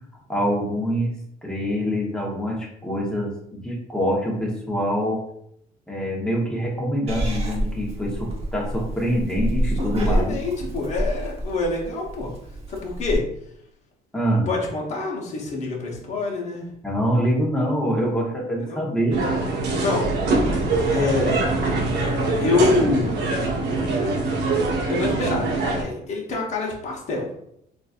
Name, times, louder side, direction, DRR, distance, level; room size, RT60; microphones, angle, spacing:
voice 1, 0.3-3.3 3.6-5.2 5.9-10.2 14.1-14.5 16.8-19.2, equal, 5° left, -2 dB, 0.9 m, -25 dB
Purr / Meow, 7.1-13.2, equal, 35° right, 0.8 m, -28 dB
voice 2, 10.0-12.3 12.7-13.2 14.5-16.7 18.6-18.8 19.8-20.1 20.5-21.4 22.4-23.2 24.9-27.3, left 3 dB, 45° left, -2 dB, 0.8 m, -25 dB
sound 1, 19.1-25.8, right 3 dB, 75° right, 0.8 m, -23 dB
3.9 x 2.5 x 2.4 m, 0.73 s
cardioid pair, 110°, 17 cm